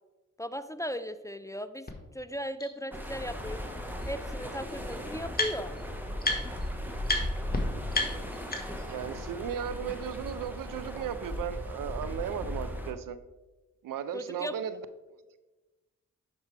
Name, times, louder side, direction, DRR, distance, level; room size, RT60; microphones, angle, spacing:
voice 1, 0.4-1.9 2.1-3.6 4.1-5.7 14.1-14.5, equal, 10° left, 12 dB, 0.4 m, -37 dB
sound 1, 1.9-2.0 2.6-2.7 4.0-4.1 4.3-5.8 6.2-6.7 7.0-7.2 7.5-7.6 7.9-8.9, left 2 dB, 30° left, 1.5 m, -32 dB
sound 2, 2.9-12.9, equal, 5° right, 1.2 m, -37 dB
voice 2, 8.9-13.2 13.8-14.8, right 8 dB, 80° right, 13 dB, 0.5 m, -36 dB
10.5 x 4.7 x 3.3 m, 1.1 s
cardioid pair, 50°, 32 cm